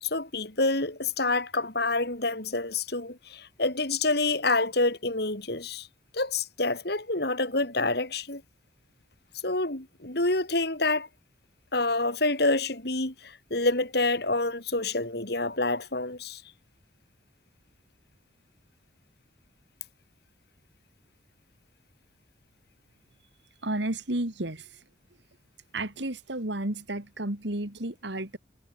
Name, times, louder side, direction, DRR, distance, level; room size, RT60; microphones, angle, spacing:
voice 1, 0.0-5.9 6.1-8.4 9.4-11.1 11.7-16.4, left 2 dB, 55° left, 3.3 m, -27 dB
voice 2, 23.6-24.6 25.7-28.4, right 1 dB, 65° right, 2.7 m, -32 dB
head